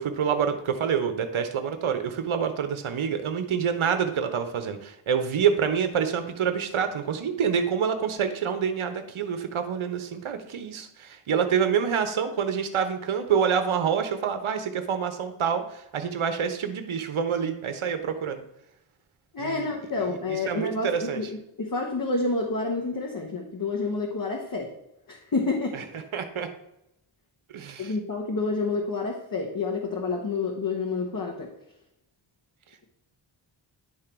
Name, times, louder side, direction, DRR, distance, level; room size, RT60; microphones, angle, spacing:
voice 1, 0.0-18.4 19.4-21.2 25.7-25.8 26.1-26.5 27.5-27.9, right 7 dB, 75° right, 7 dB, 1.0 m, -27 dB
voice 2, 19.3-24.7 25.1-25.8 27.8-31.5, left 3 dB, 45° left, 0 dB, 1.2 m, -29 dB
10.5 x 3.8 x 4.5 m, 0.85 s
wide cardioid pair, 110°, 49 cm